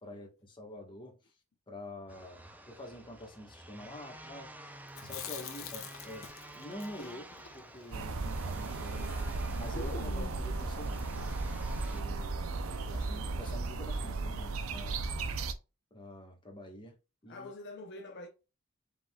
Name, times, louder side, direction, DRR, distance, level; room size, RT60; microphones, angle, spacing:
voice 1, 0.0-1.2 1.7-4.5 5.0-6.3 6.5-9.2 9.5-11.0 11.9-12.4 12.9-15.1 15.9-17.0 17.2-17.5, left 1 dB, 25° left, 1.3 m, -47 dB
sound 1, 2.1-12.0, right 1 dB, 10° right, 0.5 m, -50 dB
Chewing mastication, 4.9-9.1 9.3-9.4 9.7-10.5, left 5 dB, 75° left, 1.0 m, -45 dB
voice 2, 5.4-5.7 17.3-18.3, left 2 dB, 55° left, 0.7 m, -46 dB
sound 2, 7.9-15.5, right 3 dB, 85° right, 0.6 m, -35 dB
5.1 x 3.9 x 2.3 m
head